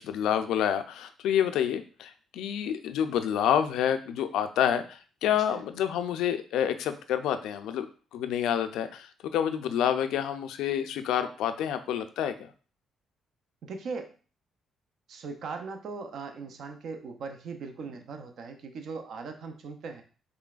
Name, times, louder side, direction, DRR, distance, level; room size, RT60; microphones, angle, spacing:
voice 1, 0.0-7.9 8.1-12.5, left 9 dB, 85° left, 9 dB, 0.3 m, -28 dB
voice 2, 13.6-14.1 15.1-20.0, right 4 dB, 65° right, 6 dB, 0.5 m, -39 dB
3.8 x 3.2 x 2.4 m, 0.38 s
cardioid pair, 90°, 0 cm